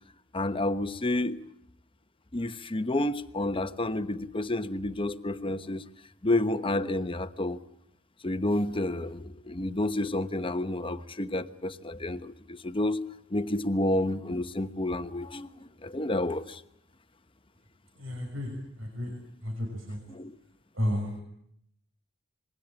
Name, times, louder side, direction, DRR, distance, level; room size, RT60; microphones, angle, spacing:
voice 1, 0.3-1.4 2.3-5.8 6.2-7.6 8.2-13.0 13.3-16.6 20.1-20.3, left 1 dB, 25° left, 10 dB, 1.1 m, -30 dB
voice 2, 18.0-18.5 18.8-19.1 19.4-20.0 20.8-21.2, equal, 80° right, 3 dB, 6.1 m, -32 dB
27.0 x 22.0 x 8.9 m, 0.74 s
head